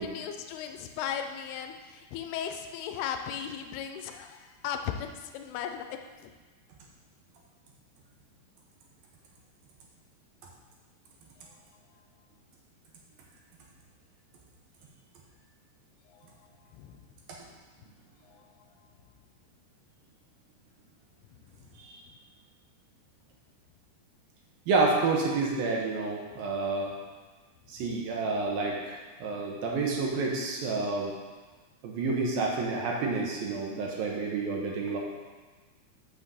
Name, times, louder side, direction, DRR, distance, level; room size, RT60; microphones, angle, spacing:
voice 1, 0.0-6.0 16.8-17.0, left 8 dB, 85° left, 6 dB, 2.6 m, -36 dB
voice 2, 24.7-26.9 27.7-31.1 31.8-35.0, right 3 dB, 75° right, -1 dB, 2.8 m, -29 dB
6.4 x 6.0 x 6.9 m, 1.3 s
omnidirectional pair, 4.6 m